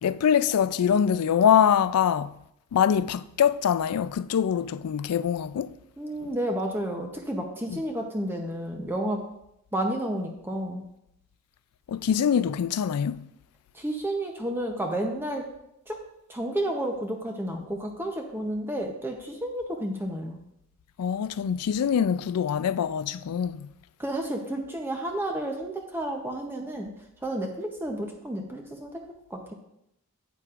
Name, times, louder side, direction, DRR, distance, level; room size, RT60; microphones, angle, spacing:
voice 1, 0.0-2.4 2.7-5.8 7.7-7.8 11.9-13.3 21.0-23.7, left 8 dB, 80° left, 0.3 m, -24 dB
voice 2, 6.0-9.2 9.7-10.8 13.7-15.5 15.9-16.0 16.3-20.4 24.0-26.9 27.2-28.9 29.3-29.5, right 1 dB, 10° right, 0.7 m, -31 dB
9.0 x 8.3 x 2.5 m
head